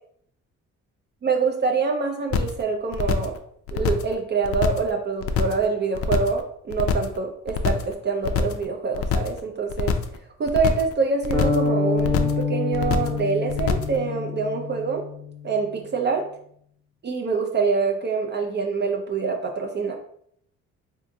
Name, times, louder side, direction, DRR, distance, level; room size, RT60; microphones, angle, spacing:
voice 1, 1.2-3.4 3.7-9.9 10.4-15.1 15.4-16.3 17.0-19.9, right 4 dB, 35° right, 2 dB, 0.4 m, -25 dB
sound 1, 2.3-2.6 2.9-3.4 3.7-4.1 4.4-4.9 5.2-5.6 5.9-6.4 6.7-7.2 7.5-7.9 8.2-8.6 8.9-9.4 9.7-10.2 10.5-10.9 11.2-11.7 12.0-12.4 12.7-13.2 13.5-14.0, left 6 dB, 50° left, 0.4 m, -25 dB
sound 2, 11.3-15.2, left 4 dB, 10° left, 1.0 m, -26 dB
3.4 x 2.6 x 2.6 m, 0.67 s
cardioid pair, 100°, 31 cm